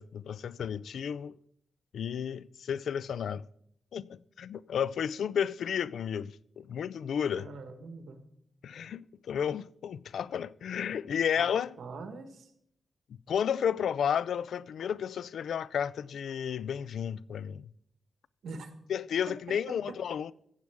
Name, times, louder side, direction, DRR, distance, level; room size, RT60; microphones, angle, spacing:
voice 1, 0.0-1.3 1.9-3.5 3.9-7.5 8.6-11.7 13.1-17.7 18.9-20.3, left 8 dB, 90° left, 0.3 m, -32 dB
voice 2, 7.3-8.2 11.4-11.5 11.8-12.5 18.4-18.7 19.5-19.6, right 3 dB, 85° right, 1.4 m, -43 dB
15.0 x 8.5 x 3.6 m
wide cardioid pair, 160°, 0 cm